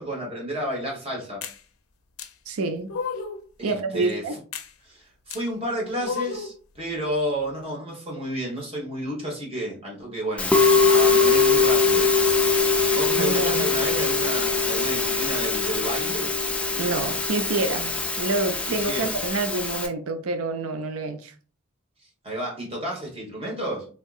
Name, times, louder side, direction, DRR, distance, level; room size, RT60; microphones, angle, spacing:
voice 1, 0.0-1.4 3.6-4.4 4.8-12.1 12.7-16.3 18.7-19.1 22.0-23.9, right 1 dB, 25° right, 1.1 m, -31 dB
sound 1, 1.4-1.6 2.2-2.3 2.9-3.4 4.5-4.7 5.3-5.4 6.0-6.6, left 5 dB, 70° left, 0.5 m, -32 dB
voice 2, 2.5-2.9 3.6-4.4 13.1-13.7 16.8-21.3, right 3 dB, 80° right, 0.4 m, -27 dB
Musical instrument, 10.4-19.9, left 4 dB, 5° left, 0.3 m, -22 dB
3.5 x 2.7 x 2.3 m
head